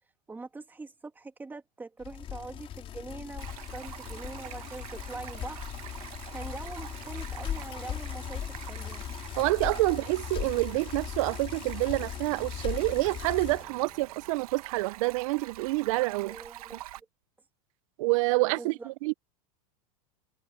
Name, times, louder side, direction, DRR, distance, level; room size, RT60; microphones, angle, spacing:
voice 1, 0.3-5.6 6.3-9.0 16.2-17.1 18.6-18.9, right 3 dB, 10° right, 2.2 m, -43 dB
Bicycle, 2.0-13.7, left 10 dB, 30° left, 3.5 m, -38 dB
Stream, 3.4-17.0, right 16 dB, 80° right, 1.5 m, -46 dB
voice 2, 9.4-16.4 18.0-19.1, right 23 dB, 60° right, 0.6 m, -27 dB
sound 1, 13.4-15.8, left 2 dB, 5° left, 6.6 m, -60 dB
supercardioid pair, 140°, 19 cm